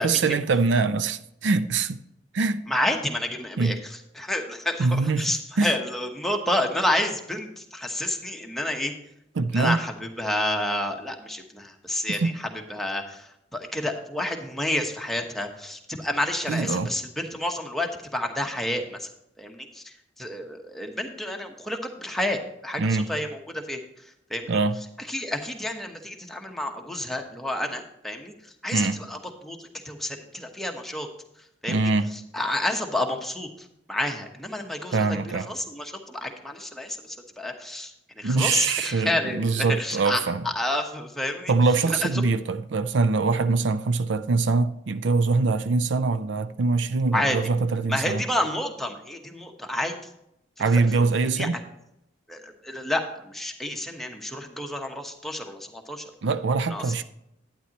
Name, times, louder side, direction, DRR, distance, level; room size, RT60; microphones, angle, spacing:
voice 1, 0.0-2.0 2.3-2.6 3.6-3.8 4.8-5.7 9.4-9.8 12.1-12.4 16.5-16.9 22.8-23.1 24.5-24.8 28.7-29.0 31.7-32.1 34.9-35.5 38.2-40.4 41.5-48.2 50.6-51.6 56.2-57.0, right 4 dB, 85° right, 0.5 m, -23 dB
voice 2, 2.7-3.8 4.2-8.9 9.5-19.1 19.4-24.6 25.0-31.1 31.6-31.9 32.3-41.5 41.9-42.1 47.1-47.4 47.9-49.9 50.7-51.1 51.4-51.5 52.3-56.0 56.7-57.0, left 1 dB, ahead, 1.0 m, -30 dB
11.5 x 9.7 x 2.9 m
head